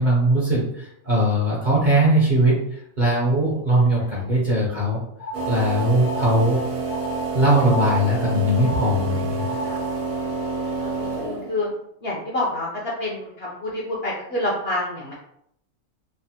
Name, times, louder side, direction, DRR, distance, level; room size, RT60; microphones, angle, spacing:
voice 1, 0.0-5.0 5.5-6.6 7.3-9.6, right 1 dB, 50° right, -6 dB, 0.6 m, -20 dB
voice 2, 3.7-4.2 9.6-9.8 10.8-11.7 12.0-12.7 13.0-15.1, left 1 dB, 60° left, -4 dB, 0.6 m, -28 dB
sound 1, 5.2-10.1, right 1 dB, 80° left, 1.2 m, -34 dB
sound 2, 5.3-11.7, right 4 dB, 85° right, 1.2 m, -28 dB
3.3 x 2.0 x 2.7 m, 0.73 s
omnidirectional pair, 1.6 m